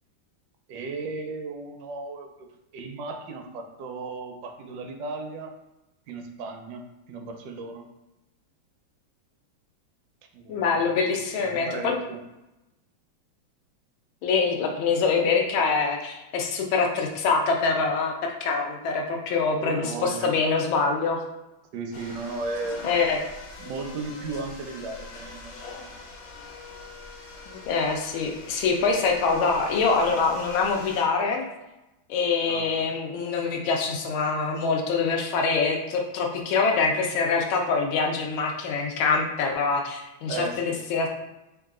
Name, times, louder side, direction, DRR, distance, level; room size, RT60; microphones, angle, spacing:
voice 1, 0.7-5.5 6.1-7.8 10.3-10.9 11.4-12.2 19.6-20.3 21.7-22.9 23.6-25.9 32.5-32.7 40.3-40.8, right 3 dB, 75° right, 4 dB, 1.0 m, -35 dB
voice 2, 10.5-11.9 14.2-21.2 22.8-23.2 27.5-31.4 32.1-41.1, left 4 dB, 90° left, 1 dB, 1.5 m, -25 dB
sound 1, 21.9-31.0, left 3 dB, 70° left, 1.5 m, -43 dB
3.8 x 2.3 x 3.6 m, 0.95 s
omnidirectional pair, 2.1 m